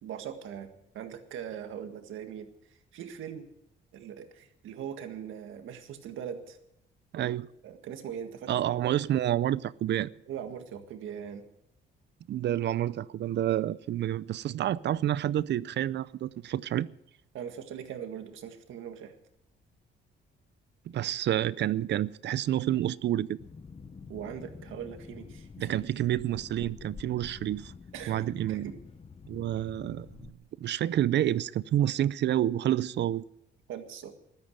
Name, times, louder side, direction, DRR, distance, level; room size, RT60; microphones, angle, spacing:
voice 1, 0.0-3.5 3.9-6.6 7.2-7.3 7.6-8.6 10.3-11.5 17.3-19.1 24.1-25.9 27.9-28.8 33.7-34.1, right 8 dB, 80° right, 1.8 m, -41 dB
voice 2, 7.1-7.5 8.5-10.1 12.3-16.9 20.9-23.4 25.6-27.7 28.1-28.7 29.3-30.3 30.6-33.2, right 12 dB, 60° right, 0.5 m, -29 dB
sound 1, 23.4-30.3, left 5 dB, 30° left, 1.0 m, -47 dB
14.5 x 12.5 x 6.6 m
cardioid pair, 90°, 20 cm